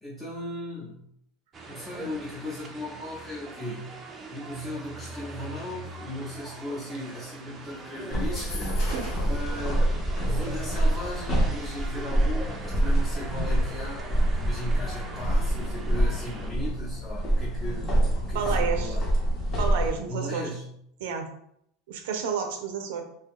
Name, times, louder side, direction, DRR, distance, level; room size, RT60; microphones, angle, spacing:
voice 1, 0.0-1.0 1.7-3.9 4.3-9.9 10.2-17.9 18.3-19.0 20.1-20.7, left 1 dB, 10° left, -9 dB, 0.8 m, -37 dB
sound 1, 1.5-16.5, right 2 dB, 25° right, 0.5 m, -42 dB
sound 2, 8.1-19.9, right 1 dB, 40° left, 1.0 m, -26 dB
sound 3, 8.2-9.4, left 2 dB, 75° left, 1.5 m, -40 dB
voice 2, 18.3-19.0 19.5-20.4 21.0-21.3 21.9-23.0, right 6 dB, 85° right, 5 dB, 0.5 m, -30 dB
2.7 x 2.3 x 3.5 m, 0.72 s
supercardioid pair, 125°, 0 cm